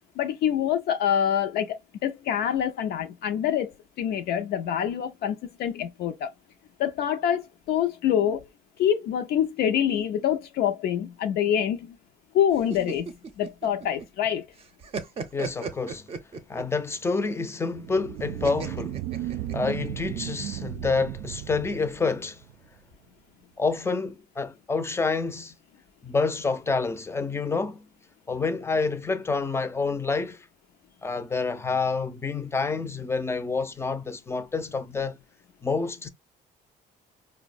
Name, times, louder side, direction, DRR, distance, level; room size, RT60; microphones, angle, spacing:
voice 1, 0.2-6.3 6.8-8.4 8.8-12.0 12.3-14.5, left 9 dB, 70° left, 0.4 m, -26 dB
sound 1, 12.5-14.3 14.6-16.8 18.4-19.9, right 4 dB, 35° right, 0.6 m, -36 dB
voice 2, 15.3-16.1 16.5-22.4 23.6-25.5 26.0-27.9 28.3-30.5 31.0-35.2 35.6-36.1, left 4 dB, 15° left, 0.5 m, -28 dB
sound 2, 17.7-22.7, right 13 dB, 80° right, 0.4 m, -35 dB
4.5 x 2.0 x 2.4 m
cardioid pair, 110°, 17 cm